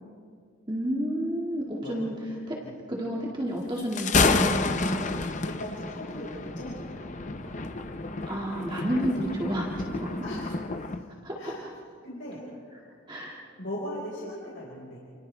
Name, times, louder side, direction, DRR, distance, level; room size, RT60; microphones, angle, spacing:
voice 1, 0.7-2.2 2.5-2.6 2.9-5.1 8.3-10.4 11.2-11.5 13.1-13.4, equal, 25° right, -3 dB, 2.1 m, -31 dB
Thunder, 3.8-11.0, left 4 dB, 35° left, 0.7 m, -29 dB
voice 2, 4.7-7.7 10.2-10.4 11.4-11.6 12.0-12.8 13.6-15.0, left 1 dB, 65° left, -5 dB, 5.1 m, -39 dB
28.5 x 28.0 x 3.4 m, 2.1 s
head